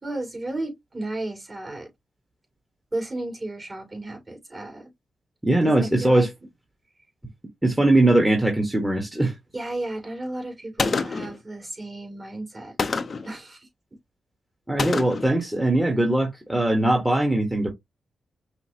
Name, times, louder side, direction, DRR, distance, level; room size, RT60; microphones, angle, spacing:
voice 1, 0.0-1.9 2.9-4.9 5.6-6.3 9.5-12.8 13.2-13.7, right 2 dB, 35° right, 2.8 m, -33 dB
voice 2, 5.4-6.3 7.6-9.3 14.7-17.7, right 1 dB, 10° right, 1.4 m, -21 dB
Gunshot gunfire, 10.8-11.4 12.8-13.3 14.8-15.4, left 4 dB, 50° left, 0.7 m, -26 dB
5.7 x 2.2 x 2.9 m
supercardioid pair, 50°, 0 cm